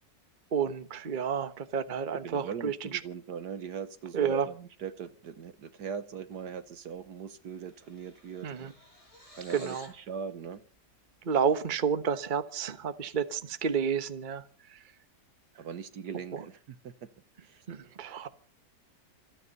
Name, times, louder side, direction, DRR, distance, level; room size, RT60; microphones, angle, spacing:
voice 1, 0.5-3.0 4.1-4.5 8.4-8.7 9.5-9.9 11.2-14.4 17.7-18.3, right 7 dB, 30° right, 1.1 m, -30 dB
voice 2, 2.2-8.5 9.3-10.6 15.6-17.1 17.4-17.6, right 7 dB, 65° right, 1.7 m, -40 dB
sound 1, 6.8-7.1 7.3-10.0, equal, 20° left, 5.5 m, -54 dB
27.0 x 9.7 x 5.4 m
omnidirectional pair, 1.9 m